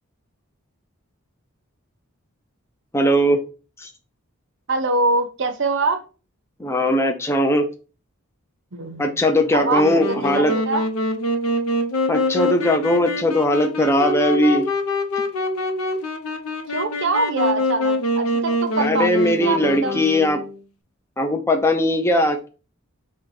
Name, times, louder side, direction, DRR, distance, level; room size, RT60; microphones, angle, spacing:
voice 1, 2.9-3.4 3.8-3.9 6.6-7.7 9.0-10.5 12.1-14.7 18.8-20.4 21.2-22.5, left 1 dB, 10° left, 4 dB, 0.4 m, -19 dB
voice 2, 4.7-6.0 8.7-9.2 9.5-10.9 16.7-20.1, right 3 dB, 55° right, 8 dB, 0.6 m, -24 dB
Wind instrument woodwind instrument, 9.7-20.6, left 1 dB, 75° left, 0.7 m, -25 dB
3.9 x 2.2 x 4.5 m, 0.34 s
head